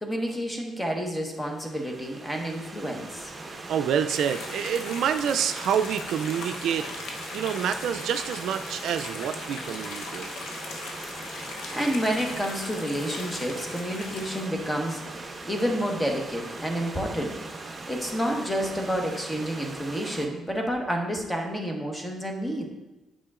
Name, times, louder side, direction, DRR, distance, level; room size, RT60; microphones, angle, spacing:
voice 1, 0.0-3.3 11.7-17.3 17.9-22.6, equal, 10° left, 2 dB, 1.3 m, -29 dB
Stream / Liquid, 1.3-20.3, right 2 dB, 25° right, 1.1 m, -40 dB
voice 2, 3.7-6.9 7.3-10.3, right 8 dB, 75° right, 9 dB, 0.3 m, -27 dB
sound 1, 4.1-14.5, left 3 dB, 75° left, 0.8 m, -39 dB
8.4 x 5.3 x 2.5 m, 1.0 s
supercardioid pair, 70°, 0 cm